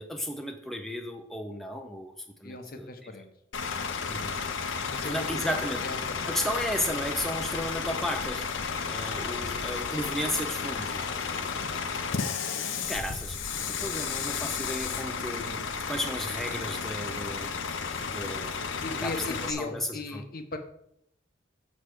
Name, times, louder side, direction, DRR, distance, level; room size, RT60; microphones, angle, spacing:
voice 1, 0.0-2.1 2.4-2.9 4.1-4.4 5.0-5.8 6.3-8.5 8.8-11.1 12.9-18.6 19.0-20.2, equal, ahead, 3 dB, 0.6 m, -34 dB
voice 2, 2.4-3.3 4.9-6.4 8.7-8.9 11.3-11.5 12.6-12.7 18.8-20.6, left 3 dB, 50° left, 7 dB, 0.9 m, -38 dB
Bus / Idling, 3.5-19.5, left 5 dB, 85° left, 0.8 m, -33 dB
7.3 x 6.5 x 4.8 m, 0.74 s
head